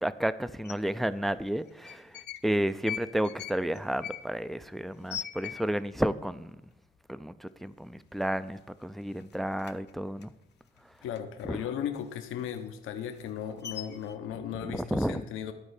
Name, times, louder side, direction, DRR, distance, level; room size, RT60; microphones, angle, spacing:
voice 1, 0.0-2.1 2.4-6.5 7.1-10.3 11.5-11.6 14.7-15.2, right 1 dB, ahead, 14 dB, 0.4 m, -31 dB
sound 1, 0.6-0.7 1.7-2.5 2.8-6.0 6.3-6.4 6.7-7.2 7.6-7.7 8.0-8.8 9.1-11.5 11.9-14.1, left 9 dB, 60° left, 0.8 m, -42 dB
voice 2, 11.0-15.5, left 9 dB, 90° left, 7 dB, 1.0 m, -36 dB
12.5 x 4.4 x 8.2 m, 0.91 s
cardioid pair, 90°, 20 cm